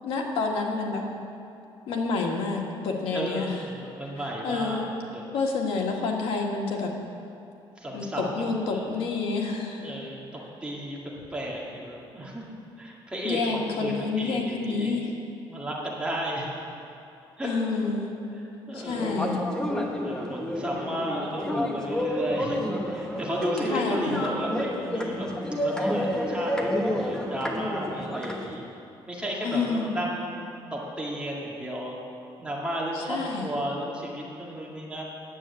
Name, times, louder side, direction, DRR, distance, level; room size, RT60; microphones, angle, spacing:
voice 1, 0.0-1.0 1.9-3.6 4.4-4.8 5.3-6.9 7.9-9.9 13.2-15.1 17.4-18.1 18.7-19.4 23.7-24.2 29.4-29.9 32.9-33.5, left 4 dB, 90° left, 0 dB, 1.7 m, -28 dB
voice 2, 3.1-4.8 5.1-5.2 7.8-8.8 9.8-11.0 11.3-12.4 12.8-14.9 15.5-16.5 17.4-17.5 18.7-19.3 20.0-25.3 25.6-28.6 29.1-32.0 32.4-35.0, equal, 10° right, -4 dB, 2.1 m, -33 dB
sound 1, 18.9-28.6, left 1 dB, 5° left, 1.1 m, -30 dB
9.7 x 8.1 x 8.3 m, 2.6 s
cardioid pair, 140°, 9 cm